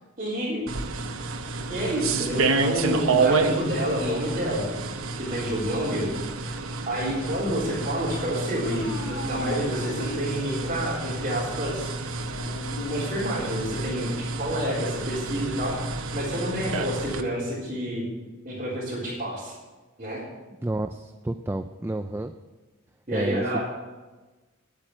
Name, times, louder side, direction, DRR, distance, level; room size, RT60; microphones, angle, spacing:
voice 1, 0.2-0.6 1.7-6.1 6.5-6.6 6.9-11.9 12.9-15.8 16.1-18.0 18.4-19.5 20.0-20.2 23.1-23.6, equal, 35° right, -10 dB, 3.9 m, -29 dB
sound 1, 0.7-17.2, right 4 dB, 70° right, 0.9 m, -30 dB
Dog / Siren, 8.6-10.8 11.1-11.2 12.2-13.7, left 1 dB, 80° left, 0.9 m, -37 dB
voice 2, 20.6-22.3 23.1-23.6, right 1 dB, 10° right, 7 dB, 0.3 m, -30 dB
11.0 x 8.5 x 7.6 m, 1.2 s
head